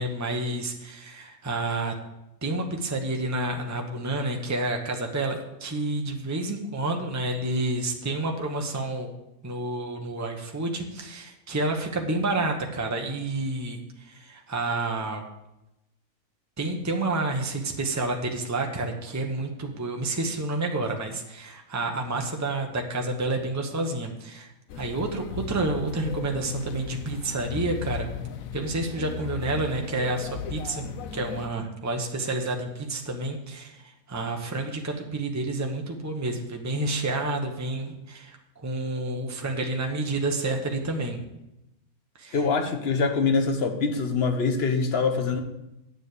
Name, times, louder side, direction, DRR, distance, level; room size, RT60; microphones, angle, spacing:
voice 1, 0.0-1.9 2.4-9.1 9.4-15.2 16.6-24.5 24.7-28.1 28.5-41.2 42.2-42.4, right 2 dB, 15° right, 2 dB, 1.0 m, -29 dB
sound 1, 24.7-31.5, left 6 dB, 70° left, 1.1 m, -36 dB
voice 2, 42.3-45.4, left 4 dB, 45° left, 6 dB, 1.2 m, -24 dB
9.2 x 7.2 x 6.8 m, 0.89 s
omnidirectional pair, 1.5 m